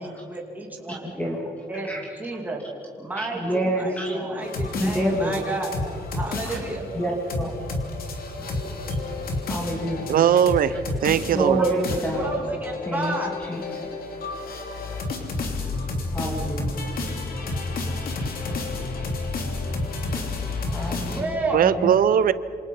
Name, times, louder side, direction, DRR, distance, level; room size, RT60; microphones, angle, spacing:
voice 1, 0.0-1.3 1.7-2.6 3.0-5.7 6.1-6.8 11.6-13.3 17.5-17.6 18.6-18.8 20.0-20.2 20.7-20.8 21.2-21.6, right 2 dB, 10° right, -1 dB, 2.5 m, -31 dB
voice 2, 1.0-1.4 1.8-2.0 3.2-4.4 4.8-5.4 6.4-6.6 6.9-7.1 7.4-7.5 8.4-8.5 9.5-10.2 10.7-10.8 11.4-12.3 12.9-13.1 13.5-13.9 16.1-16.9 20.7-22.0, right 1 dB, 10° left, -2 dB, 2.5 m, -27 dB
sound 1, 4.4-21.2, left 3 dB, 65° left, 3.0 m, -30 dB
voice 3, 10.1-10.8 11.0-11.6 21.5-22.3, right 9 dB, 60° right, 15 dB, 0.7 m, -19 dB
27.0 x 27.0 x 5.4 m, 2.4 s
wide cardioid pair, 175°, 16 cm